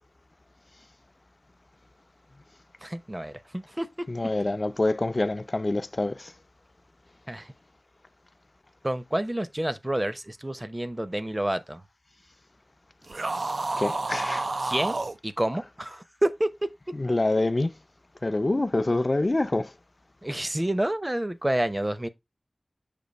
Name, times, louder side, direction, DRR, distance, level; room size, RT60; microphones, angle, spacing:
voice 1, 2.8-4.1 7.3-7.5 8.8-11.8 14.6-16.5 20.2-22.1, right 1 dB, 25° right, 0.7 m, -29 dB
voice 2, 4.1-6.3 13.8-14.5 16.9-17.7 18.2-19.7, left 2 dB, 45° left, 0.6 m, -26 dB
sound 1, 13.1-15.2, right 2 dB, 75° right, 0.4 m, -29 dB
6.8 x 2.7 x 5.2 m
wide cardioid pair, 60°, 0 cm